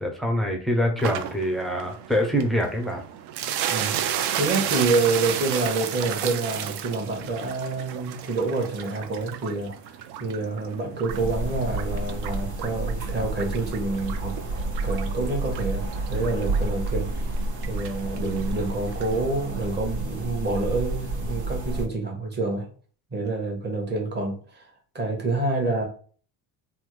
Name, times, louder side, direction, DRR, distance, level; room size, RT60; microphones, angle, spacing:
voice 1, 0.0-3.0, equal, ahead, 2 dB, 0.3 m, -25 dB
sound 1, 1.0-19.2, right 10 dB, 65° right, 0.5 m, -34 dB
voice 2, 4.4-14.3 14.8-17.4 17.7-22.7 23.1-25.9, right 3 dB, 25° right, 1 dB, 0.9 m, -27 dB
sound 2, 11.1-21.8, right 2 dB, 85° right, 1.2 m, -30 dB
3.4 x 2.1 x 3.0 m, 0.42 s
cardioid pair, 135°, 43 cm